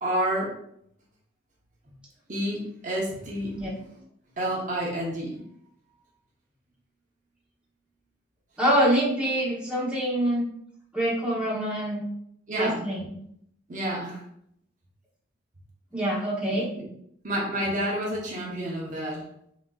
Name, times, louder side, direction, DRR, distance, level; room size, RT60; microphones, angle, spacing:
voice 1, 0.0-0.5 2.3-4.0 4.4-5.4 12.5-12.8 13.7-14.2 16.8-16.9 17.2-19.2, right 1 dB, 40° right, -3 dB, 0.9 m, -29 dB
voice 2, 8.6-10.5 10.9-12.0 12.5-13.1 15.9-16.7, right 1 dB, 5° right, -6 dB, 1.0 m, -25 dB
6.1 x 2.8 x 2.4 m, 0.72 s
head